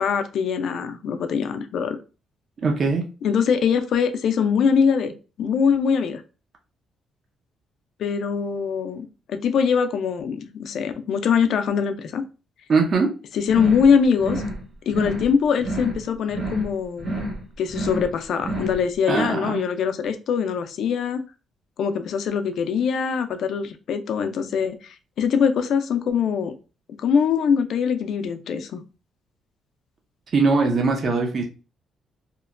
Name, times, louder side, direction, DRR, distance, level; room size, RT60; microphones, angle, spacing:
voice 1, 0.0-2.0 3.2-6.2 8.0-12.2 13.3-14.4 14.9-17.2 17.6-21.2 21.8-26.5 27.0-28.8, left 6 dB, 70° left, 0.4 m, -22 dB
voice 2, 2.6-3.0 12.7-13.1 19.1-19.6 30.3-31.4, right 4 dB, 50° right, 0.5 m, -21 dB
sound 1, 13.5-13.9 14.2-14.6 14.9-15.3 15.6-16.0 16.3-16.7 17.0-17.4 17.7-18.1 18.4-18.8, right 1 dB, 75° right, 1.4 m, -29 dB
2.9 x 2.1 x 2.4 m
cardioid pair, 90°, 0 cm